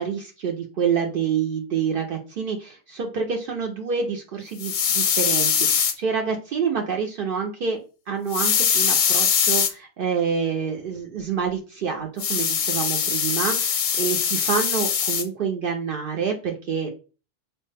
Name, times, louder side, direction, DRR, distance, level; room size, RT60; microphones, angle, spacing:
voice 1, 0.0-7.8 8.1-16.9, right 6 dB, 65° right, 1 dB, 0.7 m, -27 dB
sound 1, 4.6-5.9 8.3-9.7 12.2-15.2, left 7 dB, 60° left, 0.6 m, -22 dB
4.2 x 2.1 x 3.2 m, 0.34 s
omnidirectional pair, 1.0 m